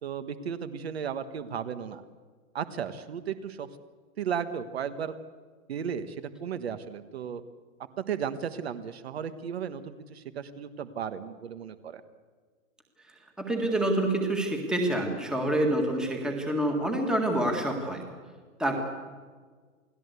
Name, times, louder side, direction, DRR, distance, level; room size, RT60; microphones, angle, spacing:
voice 1, 0.0-2.0 2.5-3.7 4.2-5.2 5.7-7.4 8.0-12.0, right 7 dB, 50° right, 11 dB, 1.5 m, -35 dB
voice 2, 13.4-18.0 18.6-18.8, right 1 dB, ahead, 2 dB, 1.8 m, -27 dB
28.5 x 18.5 x 8.2 m, 1.5 s
hypercardioid pair, 175°, 41 cm